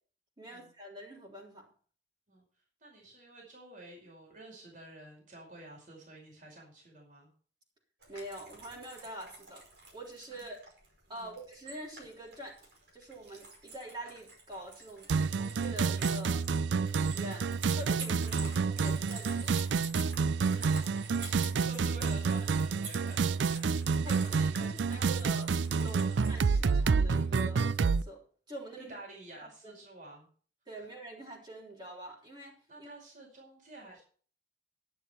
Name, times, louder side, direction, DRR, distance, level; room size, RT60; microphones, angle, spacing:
voice 1, 0.4-1.7 8.1-9.7 9.9-10.6 11.1-12.6 12.9-16.4 17.1-19.6 24.0-25.5 25.7-29.0 29.4-29.8 30.7-32.9, right 1 dB, 25° right, -3 dB, 3.7 m, -45 dB
voice 2, 2.8-7.3 10.3-10.5 11.1-11.4 17.3-17.6 18.3-18.5 20.5-20.8 21.2-25.3 26.0-26.4 28.8-30.3 30.8-30.9 32.7-34.0, right 2 dB, 45° right, -1 dB, 5.1 m, -50 dB
sound 1, 8.0-26.7, right 3 dB, 70° right, 5.2 m, -49 dB
sound 2, 15.1-28.0, right 5 dB, 85° right, 0.4 m, -29 dB
11.5 x 10.5 x 4.5 m, 0.43 s
head